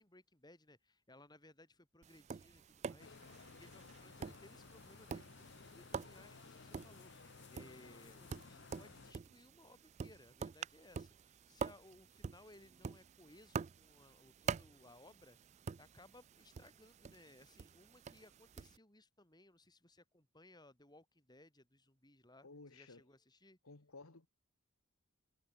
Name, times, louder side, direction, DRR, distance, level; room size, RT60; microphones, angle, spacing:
voice 1, 0.0-23.6, left 1 dB, 20° left, 6.1 m, -63 dB
Tap, 2.0-18.8, right 6 dB, 35° right, 0.3 m, -47 dB
sound 1, 3.0-9.1, left 4 dB, 55° left, 0.8 m, -57 dB
voice 2, 22.4-23.0 23.6-24.3, left 3 dB, 90° left, 1.7 m, -55 dB
head